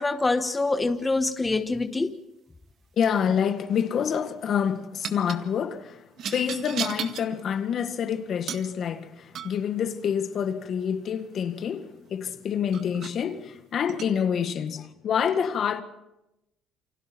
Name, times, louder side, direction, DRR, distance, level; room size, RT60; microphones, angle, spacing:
voice 1, 0.0-2.2, left 3 dB, 15° left, 1.1 m, -25 dB
voice 2, 3.0-15.8, left 8 dB, 50° left, 1.8 m, -27 dB
sound 1, 3.1-3.5 5.0-5.4 6.2-7.3 8.5-8.7 9.3-9.7 12.1-12.2 12.7-13.2 13.9-14.1, right 8 dB, 60° right, 1.8 m, -35 dB
29.0 x 25.5 x 4.6 m
supercardioid pair, 90°, 0 cm